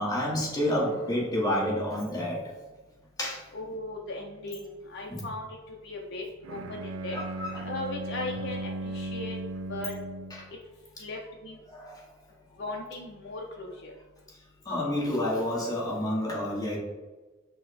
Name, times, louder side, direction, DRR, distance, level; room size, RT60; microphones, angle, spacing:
voice 1, 0.0-2.4 3.2-3.4 5.1-5.2 7.1-7.7 10.3-10.5 11.7-12.1 14.6-16.8, left 1 dB, 20° left, -4 dB, 1.1 m, -29 dB
voice 2, 3.5-7.2 7.6-9.3 9.7-9.9 11.0-11.6 12.6-13.9, left 2 dB, 55° left, -1 dB, 0.5 m, -38 dB
Bowed string instrument, 6.4-10.5, right 2 dB, 80° right, 0.3 m, -37 dB
5.6 x 2.1 x 4.1 m, 1.2 s
head